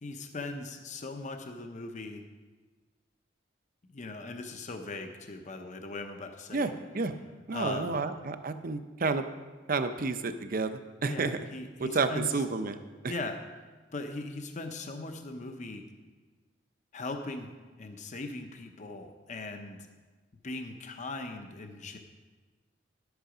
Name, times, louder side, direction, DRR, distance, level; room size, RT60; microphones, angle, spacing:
voice 1, 0.0-2.2 3.9-6.7 7.5-8.0 11.1-12.3 13.1-13.4 13.9-15.8 16.9-17.5 17.8-19.9 20.4-22.0, left 2 dB, 40° left, 5 dB, 0.7 m, -39 dB
voice 2, 6.5-7.1 7.5-9.3 9.7-11.4 11.8-12.8 13.0-13.1, right 4 dB, 50° right, 10 dB, 0.6 m, -30 dB
11.5 x 8.1 x 5.0 m, 1.3 s
head